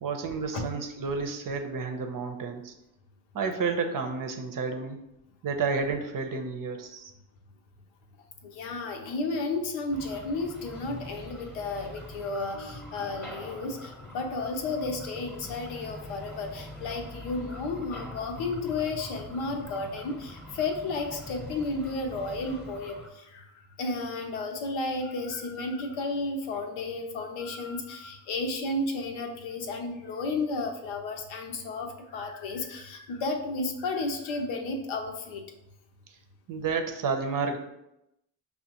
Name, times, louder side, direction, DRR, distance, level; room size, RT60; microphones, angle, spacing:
voice 1, 0.0-2.7 3.3-5.0 5.4-7.1 12.5-13.1 36.5-37.6, right 4 dB, 45° right, 5 dB, 0.6 m, -31 dB
voice 2, 8.4-35.4, left 3 dB, 70° left, 4 dB, 0.7 m, -33 dB
sound 1, 9.9-23.1, left 1 dB, 5° left, 1.0 m, -44 dB
5.5 x 2.1 x 2.9 m, 0.86 s
hypercardioid pair, 50°, 48 cm